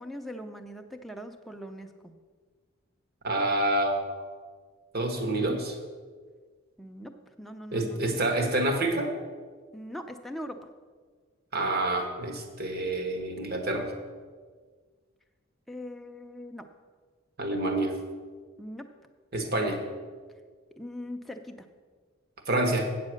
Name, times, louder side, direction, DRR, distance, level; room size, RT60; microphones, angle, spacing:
voice 1, 0.0-2.1 6.8-7.1 7.4-8.2 9.7-10.6 15.7-16.7 18.6-18.9 20.8-21.7, equal, ahead, 3 dB, 0.6 m, -41 dB
voice 2, 3.2-4.3 4.9-5.8 7.7-9.1 11.5-13.9 17.4-17.9 19.3-19.8 22.5-22.9, right 1 dB, 50° right, 4 dB, 1.3 m, -27 dB
8.3 x 7.5 x 6.3 m, 1.5 s
head